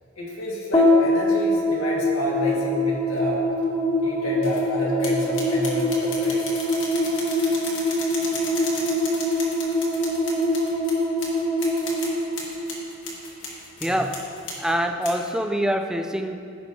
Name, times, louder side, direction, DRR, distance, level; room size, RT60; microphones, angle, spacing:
voice 1, 0.2-3.4 4.0-6.4 13.8-14.0, equal, 85° left, -5 dB, 1.9 m, -29 dB
sound 1, 0.7-13.2, left 1 dB, 25° left, 1.1 m, -24 dB
sound 2, 4.4-4.6 5.0-14.7 15.0-15.3, left 3 dB, 65° left, 1.6 m, -35 dB
voice 2, 13.8-14.3 14.6-16.4, equal, 5° right, 6 dB, 0.3 m, -25 dB
15.0 x 5.5 x 2.8 m, 2.5 s
head